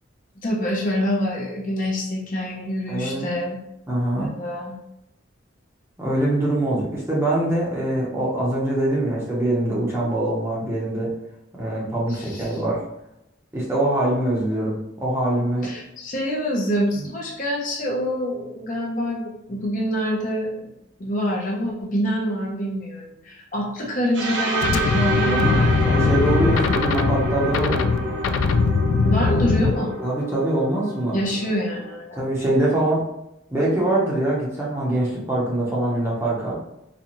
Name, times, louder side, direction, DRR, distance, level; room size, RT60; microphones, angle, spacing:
voice 1, 0.4-3.6 4.2-4.8 12.1-12.6 15.6-20.7 21.0-26.0 29.0-30.0 31.1-32.2, equal, 40° left, -3 dB, 0.7 m, -26 dB
voice 2, 2.9-3.3 3.9-4.3 6.0-11.1 11.5-12.8 13.5-15.7 17.0-17.1 25.2-27.9 30.0-31.2 32.2-33.0 33.5-36.6, right 1 dB, 10° right, -6 dB, 0.8 m, -23 dB
sound 1, 24.1-32.0, right 1 dB, 60° right, 0.6 m, -28 dB
sound 2, 24.6-29.7, left 4 dB, 80° left, 0.3 m, -21 dB
4.1 x 2.4 x 3.0 m, 0.85 s
head